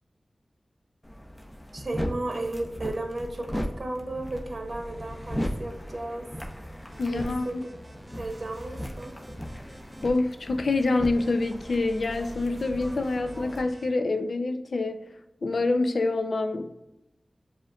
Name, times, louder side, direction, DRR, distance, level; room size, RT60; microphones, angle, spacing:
sound 1, 1.0-13.6, equal, 15° left, 0.7 m, -37 dB
voice 1, 1.7-6.3 7.0-7.5 8.2-9.2, right 2 dB, 60° right, 3 dB, 0.7 m, -34 dB
sound 2, 6.8-10.2 11.1-13.9, right 1 dB, 30° right, 0.9 m, -51 dB
voice 2, 7.0-7.7 10.0-15.0 15.4-16.7, left 3 dB, 80° left, 8 dB, 0.3 m, -26 dB
7.3 x 2.5 x 2.2 m, 0.93 s
wide cardioid pair, 50°, 0 cm